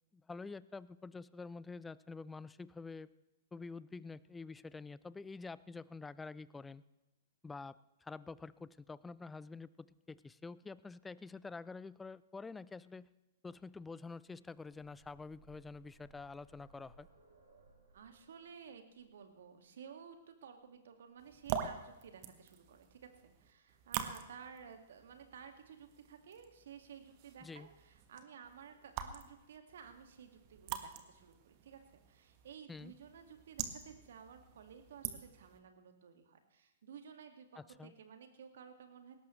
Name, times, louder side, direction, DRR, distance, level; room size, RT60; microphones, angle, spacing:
voice 1, 0.1-3.1 3.5-6.8 7.4-13.1 13.4-17.1 27.4-27.7 32.7-32.9 37.5-37.9, left 4 dB, 10° left, 18 dB, 0.5 m, -48 dB
sound 1, 14.2-22.0 23.2-23.3 23.7-23.8, right 3 dB, 85° right, 5.7 m, -66 dB
voice 2, 17.9-31.8 32.1-39.1, right 7 dB, 65° right, 6 dB, 2.0 m, -54 dB
sound 2, 21.2-35.6, right 9 dB, 45° right, 1.5 m, -46 dB
20.0 x 17.5 x 3.2 m, 1.0 s
figure-of-eight pair, 110°, 0 cm